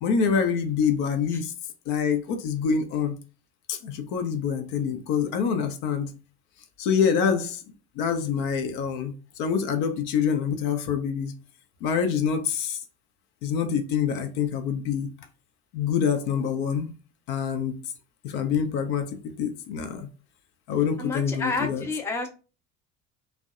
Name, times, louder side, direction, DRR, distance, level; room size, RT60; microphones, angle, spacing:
voice 1, 0.0-1.5 1.9-3.2 3.7-6.1 6.8-7.6 8.0-11.3 11.8-12.8 13.4-15.1 15.7-16.9 17.3-17.8 18.2-20.1 20.7-21.9, left 7 dB, 65° left, 0.6 m, -26 dB
voice 2, 21.0-22.3, left 3 dB, 5° left, 0.4 m, -30 dB
2.5 x 2.1 x 2.4 m
hypercardioid pair, 65°, 36 cm